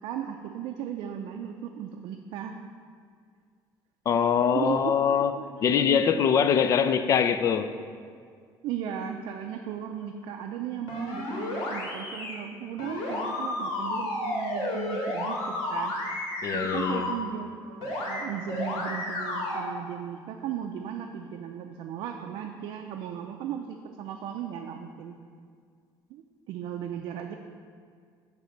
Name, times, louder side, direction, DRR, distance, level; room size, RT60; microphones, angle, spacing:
voice 1, 0.0-2.6 4.5-5.0 5.4-6.0 8.6-15.9 16.5-25.1 26.1-27.4, right 9 dB, 70° right, 0.4 m, -36 dB
voice 2, 4.1-5.3 5.6-7.7 16.4-17.1, left 7 dB, 40° left, 0.4 m, -23 dB
sound 1, 10.9-12.3 12.8-17.1 17.8-18.2 18.5-19.6, left 2 dB, 90° left, 2.2 m, -32 dB
9.2 x 3.4 x 6.4 m
cardioid pair, 155°, 9 cm